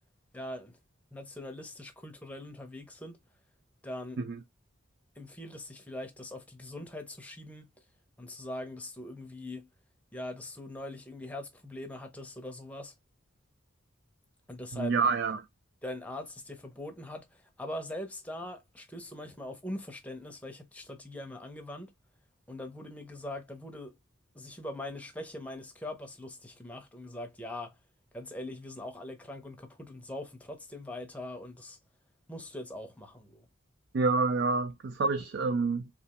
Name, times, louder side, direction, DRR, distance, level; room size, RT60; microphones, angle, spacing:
voice 1, 0.3-0.8 1.1-3.2 3.8-4.2 5.2-7.8 8.2-9.7 10.1-12.9 14.5-15.0 15.8-21.9 22.5-23.9 24.3-27.8 28.1-31.8 32.3-33.5, left 1 dB, 5° left, 0.7 m, -42 dB
voice 2, 14.7-15.5 33.9-35.9, right 4 dB, 50° right, 0.4 m, -28 dB
3.3 x 2.8 x 2.9 m
head